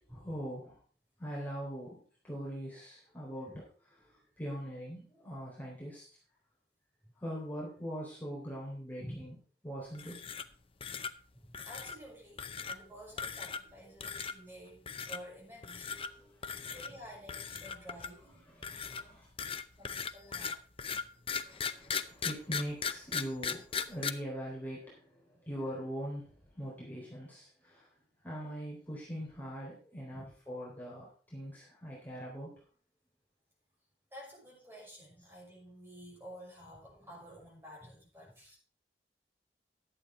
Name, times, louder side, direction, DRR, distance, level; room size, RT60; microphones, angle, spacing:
voice 1, 0.1-0.8 1.2-3.5 4.1-6.1 7.2-9.3 9.6-10.2 15.9-16.7 18.5-19.3 21.4-27.9 28.2-32.5, equal, 10° left, -6 dB, 3.9 m, -42 dB
sound 1, 9.9-10.5 10.8-11.1 11.5-12.0 12.4-12.8 13.2-13.7 14.0-14.3 14.9-15.2 15.6-16.1 16.4-16.9 17.3-18.2 18.6-24.1, left 6 dB, 30° left, 0.6 m, -38 dB
voice 2, 11.3-15.9 16.6-18.6 19.8-20.6 25.3-25.4 30.1-30.3 34.1-38.6, equal, 15° right, -3 dB, 5.7 m, -51 dB
11.5 x 8.5 x 4.6 m, 0.41 s
head